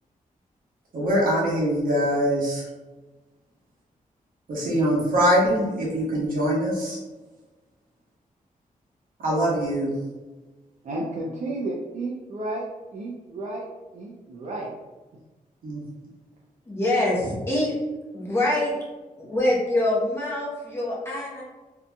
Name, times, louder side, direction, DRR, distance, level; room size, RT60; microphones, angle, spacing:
voice 1, 0.9-2.7 4.5-7.0 9.2-9.9 15.6-15.8, equal, 75° right, -5 dB, 1.0 m, -23 dB
voice 2, 10.8-12.7 12.9-13.7 13.9-14.7, right 2 dB, 55° right, -4 dB, 0.4 m, -32 dB
voice 3, 16.7-17.7 18.1-18.7 19.2-21.4, left 1 dB, 15° left, -6 dB, 0.7 m, -24 dB
2.7 x 2.6 x 2.2 m, 1.2 s
wide cardioid pair, 175°, 15 cm